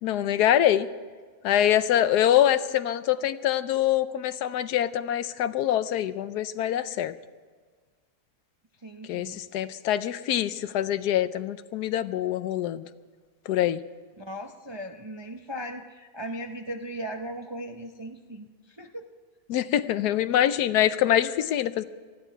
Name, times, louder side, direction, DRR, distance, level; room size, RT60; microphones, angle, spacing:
voice 1, 0.0-0.9 1.4-7.1 9.1-12.9 13.5-13.8 19.5-21.8, left 11 dB, 80° left, 14 dB, 1.2 m, -24 dB
voice 2, 8.8-9.4 14.2-19.0, right 1 dB, 35° right, 4 dB, 0.4 m, -38 dB
19.0 x 14.0 x 4.6 m, 1.5 s
omnidirectional pair, 1.7 m